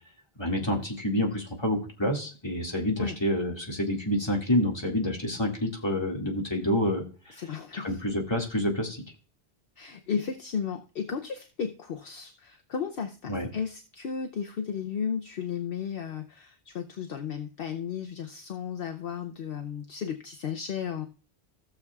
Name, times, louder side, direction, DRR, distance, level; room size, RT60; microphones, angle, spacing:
voice 1, 0.4-7.3 7.7-9.0 13.3-13.5, left 1 dB, 25° left, 0 dB, 2.1 m, -28 dB
voice 2, 7.4-7.9 9.8-21.1, left 7 dB, 65° left, 6 dB, 0.8 m, -34 dB
16.5 x 7.0 x 2.3 m, 0.36 s
omnidirectional pair, 1.1 m